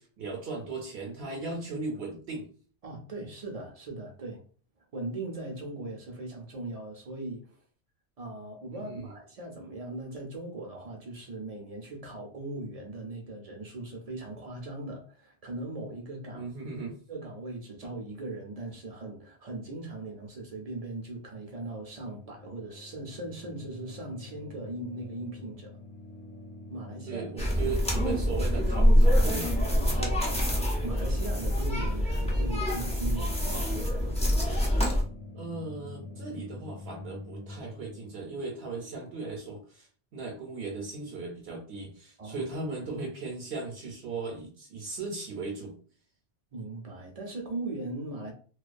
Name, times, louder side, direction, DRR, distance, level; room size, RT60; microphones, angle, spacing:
voice 1, 0.0-2.5 8.7-9.0 16.3-16.9 27.1-29.6 35.3-39.9 40.1-45.7, right 3 dB, 70° right, 0.8 m, -37 dB
voice 2, 2.8-4.4 4.9-7.6 8.2-16.5 17.1-25.8 26.7-27.3 27.6-28.1 29.7-34.1 42.2-42.5 46.5-48.3, right 2 dB, 50° right, 0.5 m, -39 dB
sound 1, 21.5-39.6, left 2 dB, 75° left, 0.9 m, -47 dB
sound 2, 27.4-35.0, equal, 10° left, 0.3 m, -25 dB
2.3 x 2.2 x 2.5 m
omnidirectional pair, 1.1 m